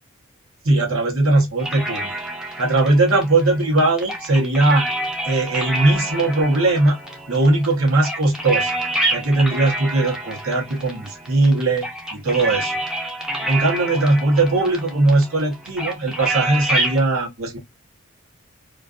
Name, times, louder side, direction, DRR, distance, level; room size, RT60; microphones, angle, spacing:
voice 1, 0.6-2.2 2.6-4.9 5.2-7.0 7.3-8.7 9.1-11.8 12.1-12.8 13.5-17.6, right 2 dB, 80° right, 0.9 m, -19 dB
sound 1, 1.6-17.0, right 1 dB, 5° right, 0.5 m, -28 dB
2.4 x 2.4 x 2.2 m
head